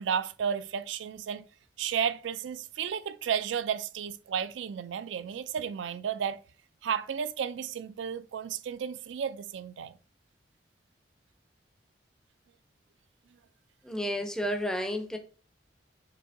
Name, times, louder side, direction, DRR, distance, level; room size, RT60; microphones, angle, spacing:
voice 1, 0.0-1.4 1.8-6.4 6.8-9.9, right 7 dB, 85° right, 0.3 m, -33 dB
voice 2, 13.8-15.2, equal, 5° left, 0.4 m, -31 dB
6.6 x 2.7 x 2.6 m
head